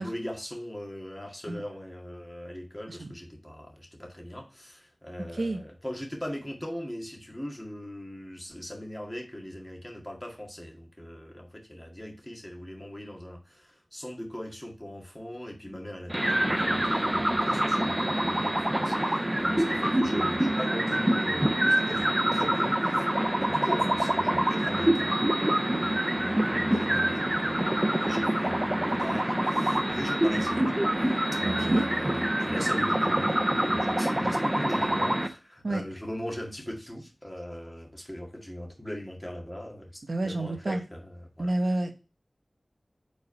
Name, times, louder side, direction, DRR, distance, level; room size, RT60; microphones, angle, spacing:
voice 1, 0.0-25.3 25.8-39.9 40.2-41.5, equal, 15° left, 2.0 m, -40 dB
sound 1, 16.1-35.3, right 1 dB, 20° right, 0.7 m, -26 dB
voice 2, 31.4-31.8 35.6-35.8 40.1-40.8 41.4-42.0, right 2 dB, 75° right, 0.9 m, -29 dB
5.1 x 3.9 x 5.3 m
wide cardioid pair, 60°, 0 cm